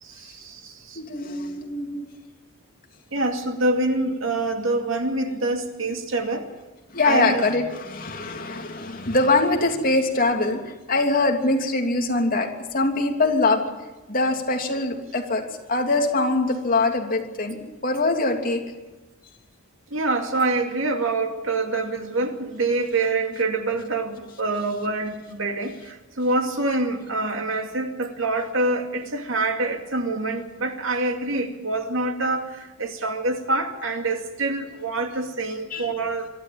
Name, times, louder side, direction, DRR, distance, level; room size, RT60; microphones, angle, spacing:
voice 1, 0.0-1.0 3.1-6.5 7.0-7.4 19.9-36.3, right 2 dB, 70° right, 5 dB, 2.4 m, -26 dB
voice 2, 0.9-2.1 6.9-13.6 14.1-18.6 35.7-35.9, left 2 dB, 45° left, 2 dB, 3.0 m, -23 dB
23.5 x 13.5 x 9.0 m, 1.1 s
head